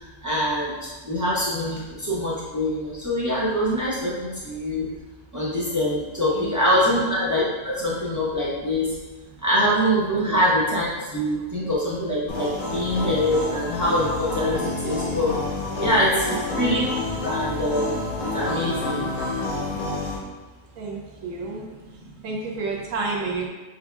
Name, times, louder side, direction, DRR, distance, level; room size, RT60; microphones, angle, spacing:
voice 1, 0.0-4.9 5.3-8.9 9.4-15.3 15.8-16.9 17.2-19.1 22.0-22.1, equal, 25° right, -9 dB, 0.3 m, -24 dB
voice 2, 6.3-7.0 10.2-10.4 14.8-14.9 15.7-16.6 20.8-21.7 22.2-23.5, right 3 dB, 65° right, -1 dB, 0.9 m, -31 dB
sound 1, 12.3-20.2, left 2 dB, 75° left, 1.3 m, -29 dB
5.8 x 2.3 x 2.4 m, 1.3 s
omnidirectional pair, 1.6 m